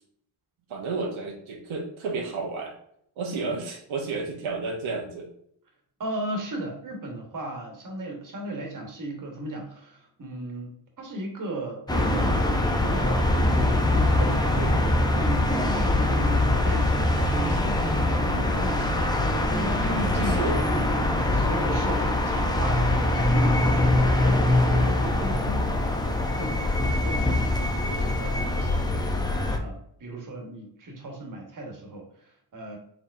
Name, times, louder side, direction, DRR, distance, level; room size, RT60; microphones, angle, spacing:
voice 1, 0.7-2.7 3.2-5.3 14.6-14.8 20.2-20.6 24.7-25.0 27.6-28.1 30.1-30.3, right 3 dB, 85° right, 0 dB, 0.9 m, -32 dB
voice 2, 6.0-19.1 19.5-20.8 21.2-25.7 26.4-26.7 27.0-27.4 27.9-28.8 29.6-32.8, right 1 dB, 45° right, 1 dB, 1.3 m, -36 dB
sound 1, 11.9-29.6, left 1 dB, 10° left, 0.5 m, -23 dB
4.5 x 3.5 x 2.6 m, 0.69 s
cardioid pair, 100°, 46 cm